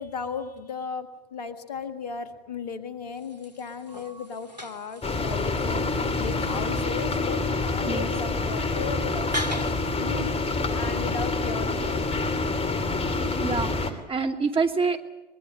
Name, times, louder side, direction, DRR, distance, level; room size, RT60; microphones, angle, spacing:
voice 1, 0.0-10.3 10.7-12.0, left 5 dB, 70° left, 9 dB, 1.9 m, -36 dB
sound 1, 3.1-10.7, equal, 90° right, 1.7 m, -40 dB
sound 2, 5.0-13.9, left 3 dB, 30° left, 3.2 m, -27 dB
voice 2, 13.4-15.0, right 4 dB, 25° right, 4 dB, 2.7 m, -26 dB
24.5 x 21.5 x 7.7 m, 1.0 s
figure-of-eight pair, 65°, 21 cm